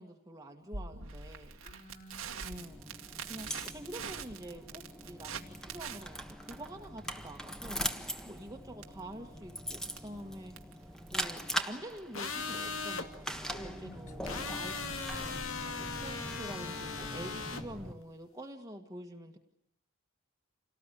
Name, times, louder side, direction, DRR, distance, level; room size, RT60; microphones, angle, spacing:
voice 1, 0.0-1.6 2.4-2.8 3.3-7.8 8.2-10.6 11.1-15.4 15.8-19.4, right 1 dB, 15° right, 2 dB, 1.7 m, -47 dB
Crackle, 0.7-12.7, right 6 dB, 85° right, 2.1 m, -46 dB
voice 2, 1.6-2.6 13.5-14.6, equal, 35° left, 2 dB, 5.2 m, -52 dB
sound 1, 2.5-17.9, equal, 5° left, 1.5 m, -42 dB
sound 2, 12.1-13.1 14.3-17.6, left 4 dB, 75° left, 2.3 m, -38 dB
28.0 x 19.0 x 9.9 m, 0.74 s
head